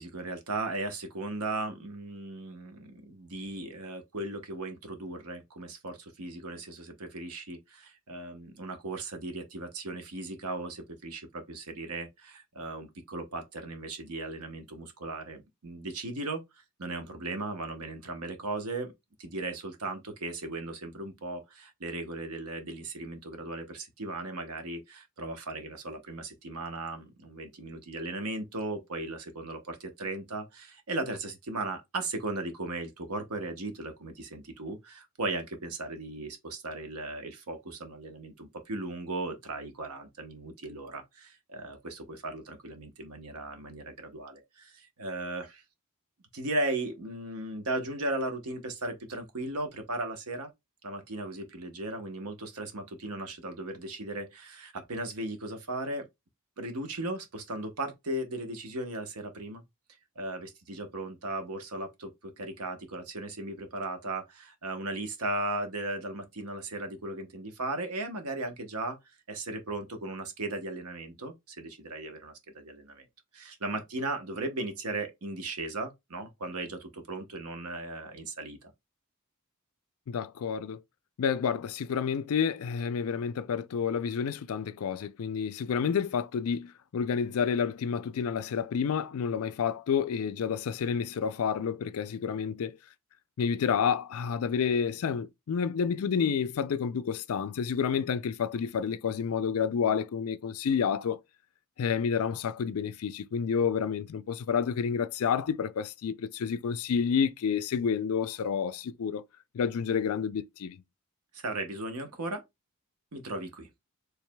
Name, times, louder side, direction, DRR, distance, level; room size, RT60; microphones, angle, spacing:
voice 1, 0.0-18.9 19.2-45.6 46.3-50.5 50.8-56.1 56.6-59.6 60.2-69.0 69.3-73.1 73.3-78.7 111.3-112.4 113.1-113.7, right 2 dB, 85° right, 1.0 m, -37 dB
voice 2, 80.1-80.8 81.2-92.8 93.4-101.2 101.8-109.2 109.5-110.8, left 6 dB, 75° left, 0.4 m, -29 dB
4.7 x 3.3 x 2.2 m
head